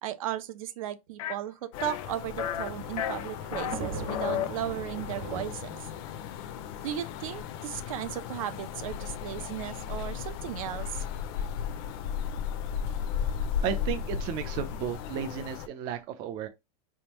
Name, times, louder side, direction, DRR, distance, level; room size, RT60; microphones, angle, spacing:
voice 1, 0.0-5.7 6.8-11.0, right 12 dB, 70° right, 0.7 m, -36 dB
sound 1, 1.2-1.3 1.8-2.1 2.4-2.7 3.0-3.7 4.1-4.5, left 10 dB, 75° left, 0.8 m, -32 dB
sound 2, 1.7-15.7, left 8 dB, 40° left, 0.5 m, -36 dB
Thunder, 2.3-7.6 8.4-8.5 8.7-8.8 9.9-10.2, right 3 dB, 45° right, 1.6 m, -42 dB
voice 2, 13.6-16.5, right 9 dB, 25° right, 0.4 m, -33 dB
5.1 x 3.5 x 2.9 m
supercardioid pair, 175°, 18 cm